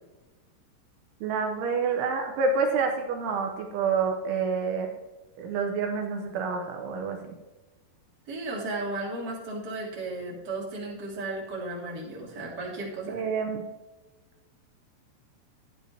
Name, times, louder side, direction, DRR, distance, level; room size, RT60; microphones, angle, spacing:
voice 1, 1.2-4.9 5.4-7.4 13.1-13.6, right 5 dB, 80° right, 2 dB, 3.2 m, -28 dB
voice 2, 8.3-13.2, right 2 dB, 25° right, -5 dB, 2.8 m, -34 dB
13.0 x 10.5 x 2.9 m, 1.2 s
omnidirectional pair, 5.7 m